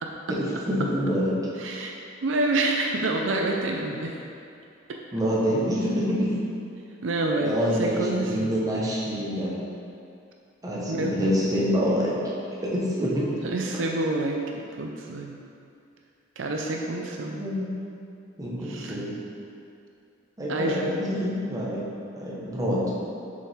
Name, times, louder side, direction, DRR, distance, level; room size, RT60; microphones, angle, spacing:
voice 1, 0.3-1.4 5.1-6.3 7.4-9.6 10.6-12.1 12.5-13.4 13.7-13.8 17.3-17.7 18.4-19.1 20.4-21.8 22.1-22.9, equal, 20° right, -6 dB, 1.2 m, -26 dB
voice 2, 1.6-1.9 2.2-4.2 7.0-8.5 10.9-11.4 13.4-14.4 14.8-15.4 16.4-17.4 18.6-19.0 20.5-21.0, right 2 dB, 75° right, 1 dB, 0.5 m, -27 dB
6.8 x 5.3 x 3.6 m, 2.6 s
head